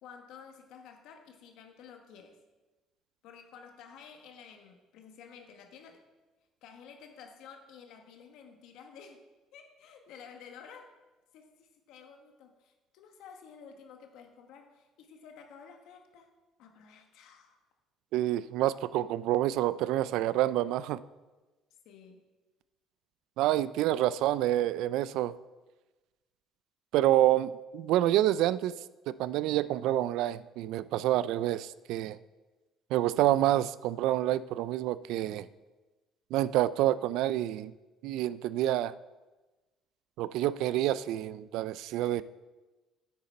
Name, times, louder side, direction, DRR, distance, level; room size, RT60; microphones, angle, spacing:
voice 1, 0.0-2.4 3.2-6.0 6.6-9.2 9.5-10.9 11.3-16.3 16.6-17.6 21.8-22.3, left 6 dB, 75° left, 4 dB, 1.2 m, -52 dB
voice 2, 18.1-21.0 23.4-25.3 26.9-28.7 29.1-32.2 32.9-35.5 36.3-37.7 38.0-38.9 40.2-42.2, right 13 dB, 75° right, 17 dB, 0.3 m, -28 dB
9.5 x 8.8 x 4.2 m, 1.2 s
cardioid pair, 160°, 0 cm